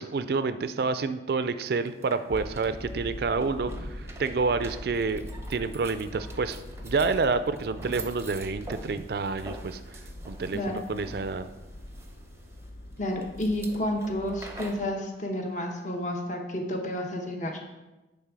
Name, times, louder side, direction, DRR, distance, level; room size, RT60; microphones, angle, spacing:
voice 1, 0.0-6.6 6.8-9.8 10.2-11.5, right 4 dB, 60° right, 12 dB, 0.4 m, -28 dB
sound 1, 1.7-14.9, right 2 dB, 15° right, 0.6 m, -47 dB
sound 2, 2.3-14.8, left 1 dB, 60° left, 0.6 m, -42 dB
voice 2, 13.0-17.6, left 1 dB, 45° left, 2 dB, 1.0 m, -30 dB
9.5 x 3.5 x 4.8 m, 1.1 s
head